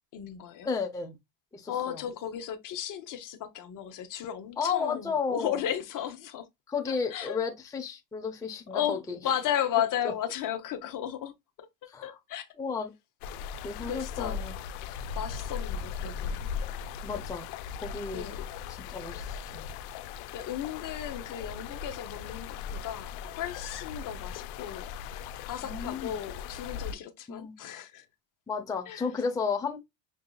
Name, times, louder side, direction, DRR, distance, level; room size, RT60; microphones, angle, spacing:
voice 1, 0.1-0.7 1.7-6.5 6.9-7.4 8.7-11.3 12.0-12.5 13.9-14.4 15.1-16.5 18.1-18.5 20.3-28.1 28.9-29.1, left 10 dB, 40° left, 0.7 m, -35 dB
voice 2, 0.6-1.1 1.5-2.0 4.6-5.6 6.7-9.2 11.9-12.1 12.6-12.9 13.5-14.5 17.0-17.5 17.7-18.3 18.7-19.7 25.6-26.2 27.3-27.5 28.5-29.8, left 5 dB, 5° left, 0.6 m, -33 dB
sound 1, 13.2-26.9, left 7 dB, 85° left, 0.6 m, -38 dB
6.0 x 2.7 x 2.2 m
supercardioid pair, 110°, 49 cm